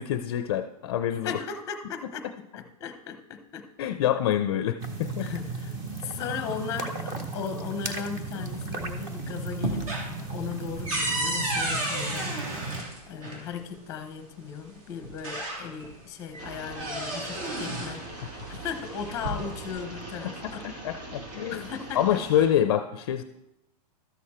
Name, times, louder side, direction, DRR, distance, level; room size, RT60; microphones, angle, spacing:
voice 1, 0.0-1.4 3.8-5.3 20.6-21.7 21.9-23.2, left 10 dB, 40° left, 9 dB, 0.4 m, -26 dB
voice 2, 1.1-2.3 2.5-3.7 5.2-5.7 6.0-12.4 13.1-18.1 18.5-20.6 21.5-22.2, left 7 dB, 15° left, 7 dB, 0.8 m, -37 dB
sound 1, 4.8-12.8, right 3 dB, 15° right, 0.6 m, -35 dB
sound 2, 8.5-9.1 9.4-13.4 14.5-14.6 15.0-16.0 16.3-18.0 18.9-19.7, right 1 dB, 60° right, 3.0 m, -32 dB
sound 3, 16.4-22.5, right 2 dB, 85° right, 3.3 m, -42 dB
12.5 x 6.6 x 4.3 m, 0.90 s
supercardioid pair, 175°, 20 cm